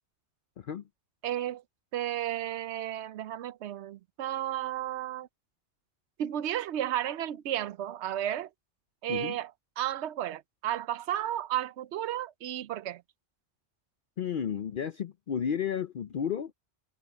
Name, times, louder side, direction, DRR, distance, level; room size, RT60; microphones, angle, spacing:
voice 1, 1.2-1.6 1.9-5.3 6.2-8.5 9.0-9.5 9.8-13.0, right 12 dB, 75° right, 0.9 m, -33 dB
voice 2, 14.2-16.5, left 8 dB, 55° left, 0.7 m, -32 dB
omnidirectional pair, 1.2 m